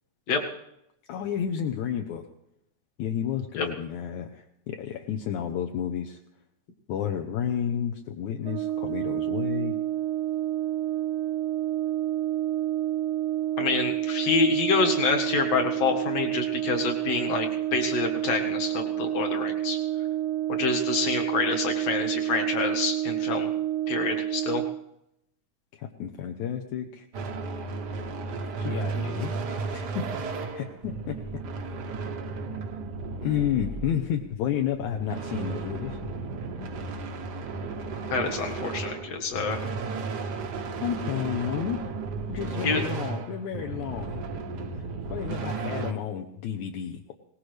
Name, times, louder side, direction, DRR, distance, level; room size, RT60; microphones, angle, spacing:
voice 1, 1.1-2.3 3.0-6.2 6.9-9.8 25.7-27.1 28.6-30.1 30.5-31.2 31.6-31.7 33.2-36.0 40.3-40.4 40.8-41.8 42.3-44.2 44.7-47.1, left 9 dB, 75° left, 4 dB, 2.3 m, -31 dB
Brass instrument, 8.4-24.8, right 13 dB, 80° right, 2.2 m, -29 dB
voice 2, 13.6-19.8 20.6-23.5 23.9-24.6 38.1-39.6 42.6-42.9, left 4 dB, 55° left, 2 dB, 2.7 m, -27 dB
sound 1, 27.1-34.3 34.7-45.9, right 4 dB, 60° right, 1.0 m, -34 dB
22.0 x 19.0 x 3.3 m, 0.81 s
omnidirectional pair, 3.5 m